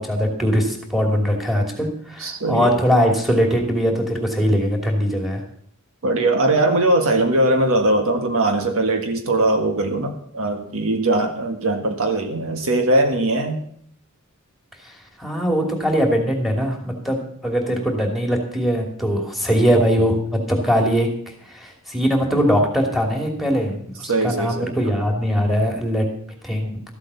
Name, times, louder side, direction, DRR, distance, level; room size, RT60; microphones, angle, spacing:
voice 1, 0.0-5.4 14.8-14.9 15.2-21.1 21.5-26.1 26.4-26.7, equal, ahead, 1 dB, 2.8 m, -21 dB
voice 2, 2.2-2.8 6.0-13.6 24.1-24.7, right 2 dB, 65° right, 5 dB, 1.7 m, -20 dB
14.0 x 8.2 x 7.0 m, 0.62 s
head